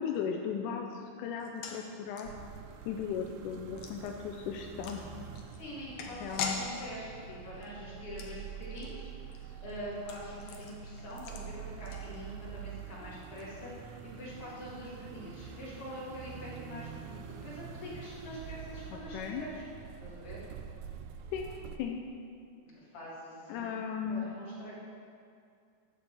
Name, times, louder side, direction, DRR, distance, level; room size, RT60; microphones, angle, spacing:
voice 1, 0.0-2.3 2.9-5.0 6.2-6.7 19.1-19.4 21.3-21.5 21.8-22.0 23.5-24.3, left 7 dB, 85° left, 2 dB, 2.1 m, -36 dB
sound 1, 1.4-12.6 12.8-12.9 13.2-13.4, left 5 dB, 70° left, 1.4 m, -44 dB
sound 2, 2.2-21.8, right 8 dB, 85° right, 2.0 m, -46 dB
voice 2, 5.6-19.7 20.0-20.4 22.7-24.7, left 1 dB, 50° left, -7 dB, 3.2 m, -45 dB
11.0 x 4.5 x 7.1 m, 2.3 s
omnidirectional pair, 3.6 m